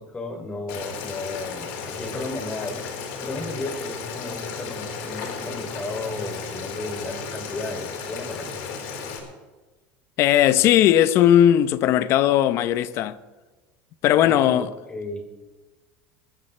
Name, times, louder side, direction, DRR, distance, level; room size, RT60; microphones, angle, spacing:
voice 1, 0.0-2.8 3.2-8.6 14.2-15.3, left 2 dB, 20° left, 3.2 m, -34 dB
Boiling, 0.7-9.2, left 5 dB, 70° left, 4.4 m, -34 dB
voice 2, 10.2-13.2 14.0-14.7, left 11 dB, 55° left, 0.8 m, -18 dB
24.0 x 14.0 x 3.3 m
supercardioid pair, 120°, 5 cm